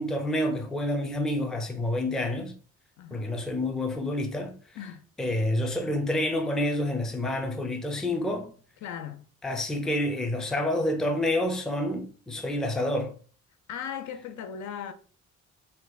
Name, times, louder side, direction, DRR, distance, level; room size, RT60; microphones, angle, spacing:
voice 1, 0.0-2.5 3.1-4.6 5.2-8.5 9.4-13.2, left 1 dB, ahead, 0.4 m, -28 dB
voice 2, 3.0-3.3 4.8-5.0 8.8-9.2 13.7-14.9, left 8 dB, 70° left, 0.5 m, -37 dB
2.6 x 2.3 x 3.9 m
cardioid pair, 90°, 30 cm